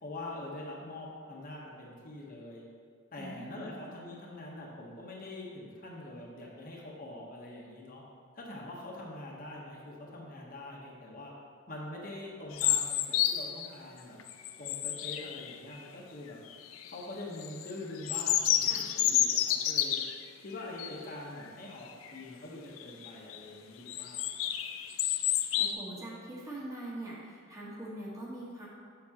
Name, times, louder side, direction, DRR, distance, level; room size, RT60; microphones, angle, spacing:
voice 1, 0.0-2.6 3.1-8.0 8.3-11.3 11.7-14.2 14.6-16.4 16.9-20.0 20.4-24.5, left 2 dB, 45° left, -3 dB, 1.0 m, -44 dB
voice 2, 3.2-3.9 18.6-18.9 25.5-28.7, right 1 dB, 15° right, -6 dB, 1.3 m, -43 dB
sound 1, 12.5-13.7 14.2-15.8 16.5-17.0 17.4-20.2 20.8-21.0 21.4-21.5 21.9-22.2 22.8-23.4 23.9-25.7, left 11 dB, 80° left, 0.4 m, -30 dB
7.1 x 6.8 x 2.9 m, 2.1 s
head